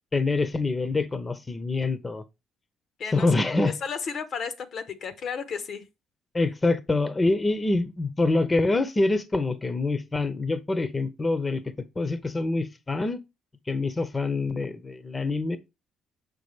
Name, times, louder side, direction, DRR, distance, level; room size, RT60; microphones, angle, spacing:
voice 1, 0.1-2.2 3.1-3.8 6.3-13.2 13.7-15.6, left 3 dB, 25° left, 0.8 m, -25 dB
voice 2, 3.8-5.8, left 6 dB, 60° left, 1.0 m, -33 dB
6.3 x 5.3 x 3.2 m
cardioid pair, 85°, 0 cm